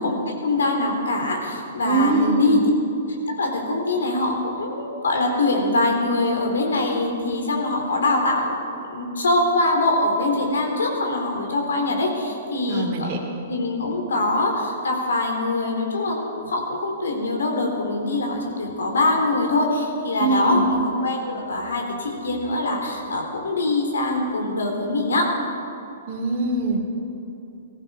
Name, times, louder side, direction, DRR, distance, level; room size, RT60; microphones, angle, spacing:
voice 1, 0.0-2.6 3.4-8.6 8.9-13.1 13.5-25.3, left 2 dB, 80° left, 1 dB, 3.6 m, -23 dB
voice 2, 1.8-2.6 12.7-13.2 20.2-20.7 26.1-26.8, right 2 dB, 45° right, 0 dB, 2.7 m, -22 dB
19.5 x 15.0 x 5.0 m, 2.8 s
hypercardioid pair, 125°, 0 cm